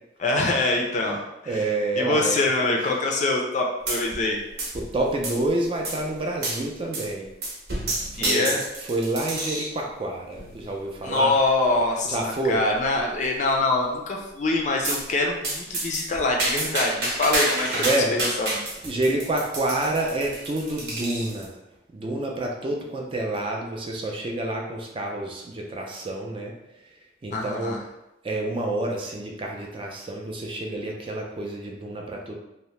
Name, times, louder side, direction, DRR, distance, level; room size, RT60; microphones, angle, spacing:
voice 1, 0.2-1.2 1.4-1.7 2.0-4.4 8.2-8.6 11.0-17.7 18.1-18.6 27.3-27.8, left 2 dB, 40° left, 1 dB, 0.4 m, -24 dB
voice 2, 1.5-2.5 4.7-7.3 8.0-8.5 8.8-11.3 12.1-12.6 17.7-18.1 18.8-21.6 21.9-26.5 27.2-27.8 28.2-32.4, right 2 dB, 30° right, 0 dB, 0.4 m, -28 dB
sound 1, 3.9-4.3 4.6-5.5 5.8-6.0 6.4-6.6 6.9-7.1 7.4-9.8 10.4-10.7 11.4-11.5 11.8-11.9 12.2-12.3 12.7-13.2 14.8-15.1 15.4-21.5, right 2 dB, 60° right, 0.8 m, -29 dB
2.7 x 2.0 x 3.1 m, 0.91 s
head